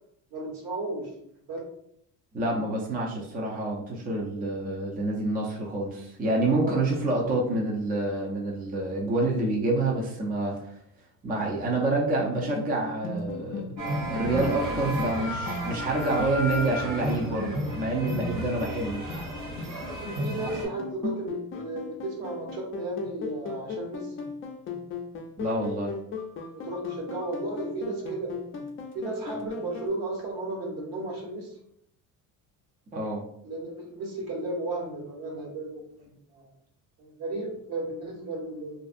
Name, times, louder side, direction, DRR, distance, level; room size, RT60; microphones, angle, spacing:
voice 1, 0.3-1.1 1.5-1.6 6.5-6.9 18.5-18.6 20.0-24.1 26.5-28.3 28.9-31.6 33.4-36.4 37.0-38.8, right 2 dB, 65° right, -3 dB, 1.4 m, -34 dB
voice 2, 2.3-10.8 11.2-13.7 14.1-19.0 19.4-19.5 25.4-25.9 32.9-33.2, right 2 dB, 25° right, -2 dB, 0.5 m, -27 dB
sound 1, 12.3-29.9, left 4 dB, 35° left, 0.4 m, -38 dB
sound 2, 13.8-20.7, equal, 45° right, 1.2 m, -33 dB
2.5 x 2.4 x 2.5 m, 0.70 s
cardioid pair, 100°, 38 cm